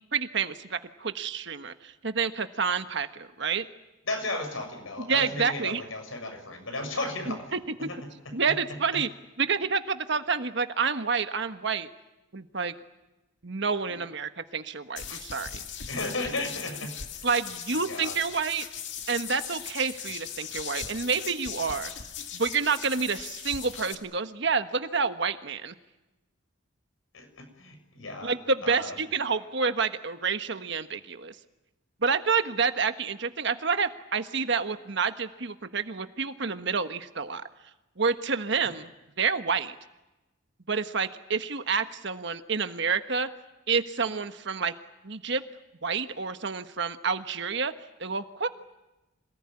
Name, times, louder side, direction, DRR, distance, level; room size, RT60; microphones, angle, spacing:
voice 1, 0.1-3.6 5.1-5.8 8.3-9.1 9.4-11.9 12.3-12.7 13.4-15.5 17.2-18.6 19.1-21.9 22.3-25.7 28.2-31.3 32.0-37.5 38.0-38.9 39.2-39.7 40.7-43.3 43.7-44.7 45.0-45.4 45.8-47.7 48.0-48.5, right 5 dB, 60° right, 9 dB, 1.4 m, -28 dB
voice 2, 4.0-8.0 8.5-8.6 8.9-9.0 13.8-14.0 15.1-15.5 15.9-16.9 17.2-17.3 17.7-18.2 27.1-28.3 28.6-29.0, left 2 dB, 85° left, 6 dB, 6.7 m, -35 dB
sound 1, 15.0-23.9, left 8 dB, 60° left, 2.3 m, -39 dB
27.0 x 18.5 x 9.9 m, 1.0 s
head